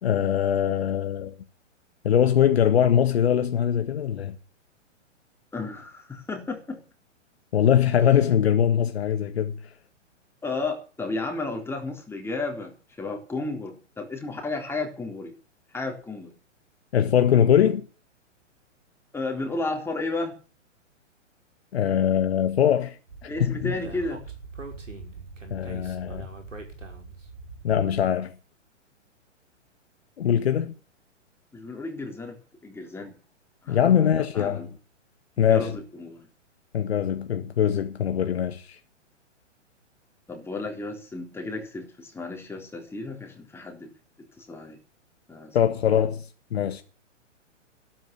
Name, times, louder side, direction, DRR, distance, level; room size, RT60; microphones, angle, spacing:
voice 1, 0.0-1.3 2.0-4.3 7.5-9.5 16.9-17.9 21.7-23.0 23.2-23.7 25.5-26.3 27.6-28.3 30.2-30.7 33.7-34.7 35.4-35.7 36.7-38.8 45.5-46.2 46.5-46.8, left 9 dB, 55° left, 1.6 m, -22 dB
voice 2, 5.5-6.8 10.4-15.3 15.7-16.3 19.1-20.4 23.3-24.2 31.5-32.4 32.6-33.2 33.6-34.7 35.4-36.3 40.3-43.9 44.4-44.8 45.3-45.6 45.9-46.0, left 3 dB, 5° left, 3.7 m, -33 dB
Speech, 23.1-28.0, right 3 dB, 80° right, 5.5 m, -41 dB
13.0 x 12.5 x 7.2 m
figure-of-eight pair, 115°, 37 cm